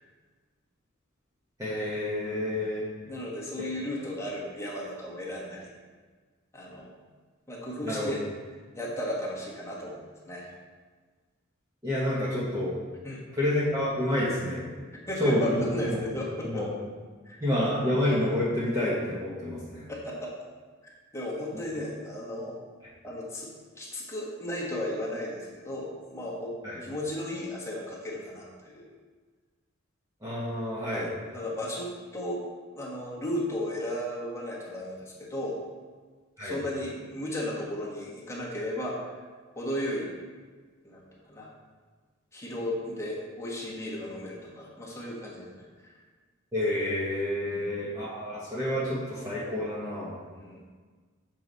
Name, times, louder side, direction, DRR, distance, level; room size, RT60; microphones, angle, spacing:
voice 1, 1.6-2.8 3.6-3.7 7.8-8.1 11.8-12.8 13.4-14.6 15.2-15.6 16.5-16.7 17.4-19.8 26.6-26.7 30.2-31.1 36.4-36.6 46.5-50.2, left 1 dB, 20° right, -9 dB, 1.2 m, -28 dB
voice 2, 2.2-2.6 3.0-5.7 6.5-6.9 7.5-8.2 8.7-10.5 13.0-13.2 14.9-16.7 17.2-17.4 19.9-20.3 20.8-22.5 23.0-23.5 23.8-26.5 26.8-28.9 30.9-32.4 32.7-35.6 36.4-39.2 39.5-40.1 40.8-41.5 42.3-45.9 47.4-47.7 50.3-50.6, left 1 dB, 15° left, -5 dB, 1.4 m, -35 dB
7.1 x 4.7 x 4.0 m, 1.5 s
head